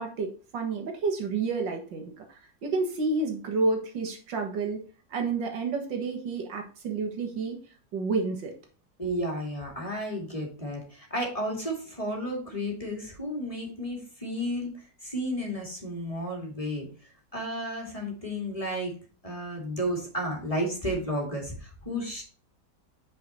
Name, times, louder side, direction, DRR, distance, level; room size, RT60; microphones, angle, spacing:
voice 1, 0.0-4.8 5.1-7.6 7.9-8.5, right 3 dB, 85° right, 4 dB, 2.3 m, -30 dB
voice 2, 9.0-16.9 17.3-18.9 19.2-22.2, equal, 20° left, 0 dB, 2.4 m, -32 dB
8.5 x 5.3 x 4.3 m, 0.39 s
omnidirectional pair, 1.9 m